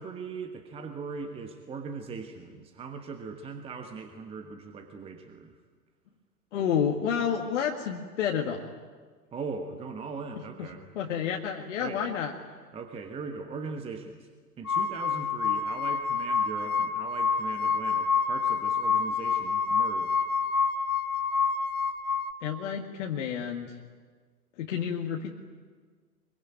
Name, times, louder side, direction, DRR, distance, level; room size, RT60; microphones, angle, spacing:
voice 1, 0.0-5.5 9.3-10.9 11.8-12.0 12.7-14.3 14.6-20.2, right 4 dB, 10° right, 6 dB, 1.3 m, -39 dB
voice 2, 6.5-8.7 10.6-10.7 11.0-12.3 22.4-23.7 24.6-25.3, left 8 dB, 45° left, 1 dB, 2.0 m, -30 dB
sound 1, 14.6-22.3, left 5 dB, 65° left, 1.6 m, -27 dB
23.5 x 23.0 x 9.1 m, 1.6 s
figure-of-eight pair, 110°, 49 cm